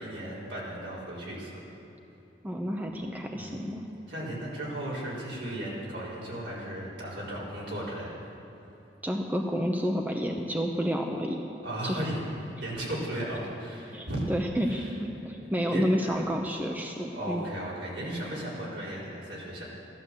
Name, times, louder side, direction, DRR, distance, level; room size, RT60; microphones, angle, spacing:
voice 1, 0.0-1.5 3.3-3.6 4.1-8.2 11.6-14.2 14.7-14.9 15.4-16.1 17.1-19.6, right 1 dB, 75° right, -7 dB, 4.5 m, -36 dB
voice 2, 2.4-3.8 9.0-11.4 11.8-12.0 13.9-17.5, equal, 10° right, 1 dB, 0.8 m, -30 dB
14.5 x 12.0 x 7.5 m, 2.9 s
head